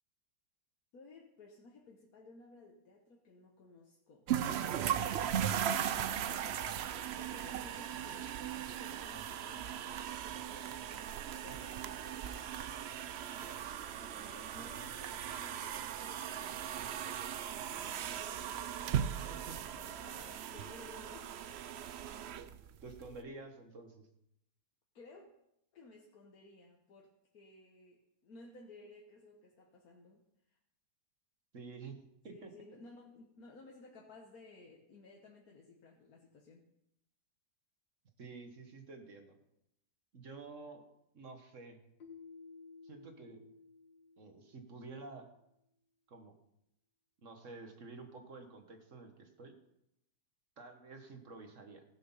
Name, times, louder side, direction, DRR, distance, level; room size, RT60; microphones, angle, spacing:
voice 1, 0.9-5.1 7.1-10.9 11.3-18.7 19.7-21.6 24.9-25.3 25.7-30.6 32.3-36.7, left 2 dB, 65° left, 0 dB, 1.6 m, -57 dB
sound 1, 4.3-23.2, right 9 dB, 80° right, 0.5 m, -38 dB
voice 2, 22.8-24.1 31.5-32.0 32.2-32.5 38.2-39.4 40.1-40.8 41.1-41.8 42.8-43.4 44.2-45.3 46.1-46.3 47.2-49.5 50.6-51.8, right 3 dB, 50° right, 5 dB, 1.6 m, -50 dB
Keyboard (musical), 42.0-44.8, left 4 dB, 80° left, 2.0 m, -55 dB
16.0 x 6.5 x 5.6 m, 0.80 s
omnidirectional pair, 1.8 m